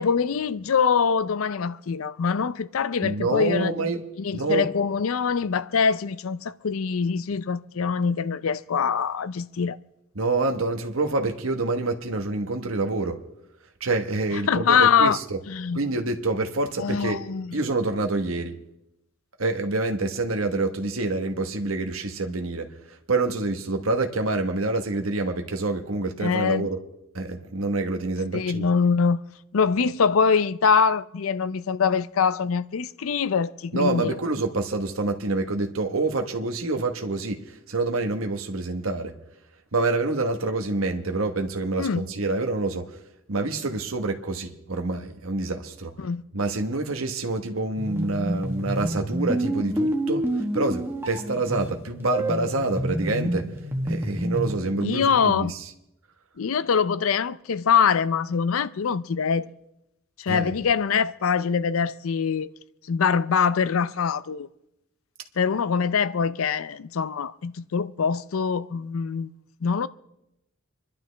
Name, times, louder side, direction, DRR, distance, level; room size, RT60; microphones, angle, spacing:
voice 1, 0.0-3.7 4.2-9.8 14.5-15.2 15.5-15.8 16.8-17.6 26.2-26.7 28.3-29.2 29.5-34.2 41.8-42.0 46.0-46.2 54.8-55.5 56.4-59.5 60.2-62.5 62.9-64.5 65.4-69.3 69.6-69.9, left 6 dB, 75° left, 0.5 m, -23 dB
voice 2, 3.0-4.0 4.3-4.7 10.1-13.2 13.8-15.4 15.7-17.2 17.5-18.5 19.4-22.7 23.1-26.8 27.1-28.7 33.7-39.1 39.7-42.9 43.3-45.9 46.3-50.2 50.5-53.5 53.8-55.6 60.3-60.5, right 3 dB, 80° right, 1.2 m, -27 dB
sound 1, 47.8-54.6, right 1 dB, 10° right, 1.2 m, -28 dB
26.5 x 11.5 x 3.4 m
head